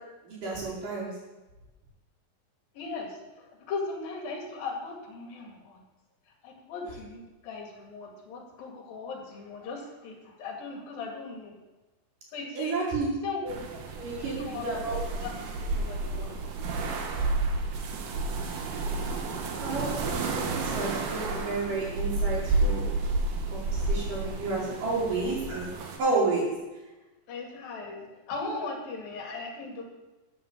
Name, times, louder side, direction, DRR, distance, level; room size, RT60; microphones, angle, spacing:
voice 1, 0.3-1.1 12.5-13.0 13.4-13.5 13.9-15.0 19.6-22.8 23.5-25.6 26.0-26.5, right 3 dB, 65° right, -5 dB, 6.1 m, -31 dB
voice 2, 2.8-3.1 3.4-5.8 6.4-11.5 12.3-12.8 13.2-13.4 14.2-16.4 27.3-29.8, left 4 dB, 75° left, 1 dB, 4.0 m, -38 dB
sound 1, 13.5-26.0, right 3 dB, 85° right, 3.4 m, -31 dB
13.0 x 8.5 x 7.3 m, 1.1 s
omnidirectional pair, 4.1 m